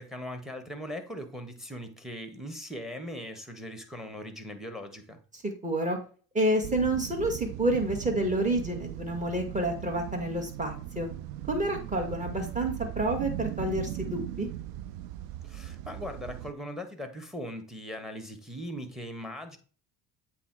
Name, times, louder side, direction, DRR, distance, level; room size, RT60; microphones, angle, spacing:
voice 1, 0.0-5.2 15.4-19.6, equal, ahead, 1.5 m, -39 dB
voice 2, 5.6-6.0 6.3-11.1 11.5-14.5, right 1 dB, 15° right, 2.1 m, -29 dB
sound 1, 6.6-16.5, right 13 dB, 75° right, 0.6 m, -38 dB
8.1 x 2.8 x 4.7 m
hypercardioid pair, 65°, 44 cm